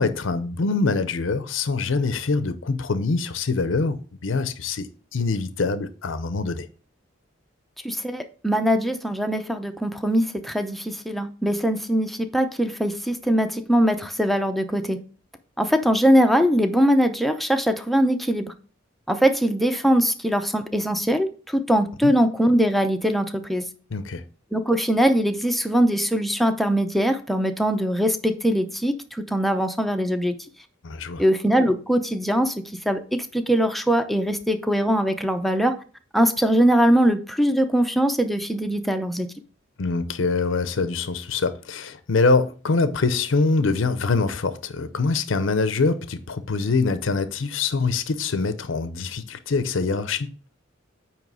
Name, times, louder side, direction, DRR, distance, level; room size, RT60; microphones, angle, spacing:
voice 1, 0.0-6.7 22.0-22.1 23.9-24.2 30.8-31.2 39.8-50.3, left 3 dB, 75° left, 0.6 m, -24 dB
voice 2, 7.8-15.0 15.6-18.5 19.1-23.6 24.5-30.3 31.2-32.5 32.9-35.7 36.1-39.3, equal, ahead, 0.6 m, -21 dB
9.1 x 3.1 x 6.1 m
head